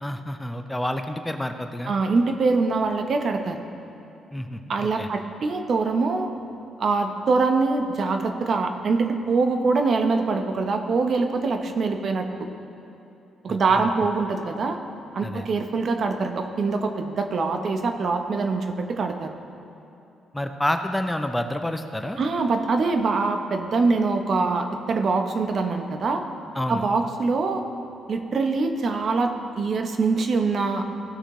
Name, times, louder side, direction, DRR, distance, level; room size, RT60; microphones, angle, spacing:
voice 1, 0.0-1.9 4.3-5.1 13.5-13.9 15.2-15.5 20.3-22.2 26.5-26.9, left 1 dB, 10° left, 6 dB, 0.5 m, -29 dB
voice 2, 1.9-3.6 4.7-6.3 6.8-12.5 13.4-14.8 15.1-19.3 22.2-26.2 26.7-27.6 28.1-30.8, right 4 dB, 55° right, 6 dB, 0.8 m, -24 dB
16.5 x 6.4 x 3.1 m, 2.9 s
cardioid pair, 90°, 0 cm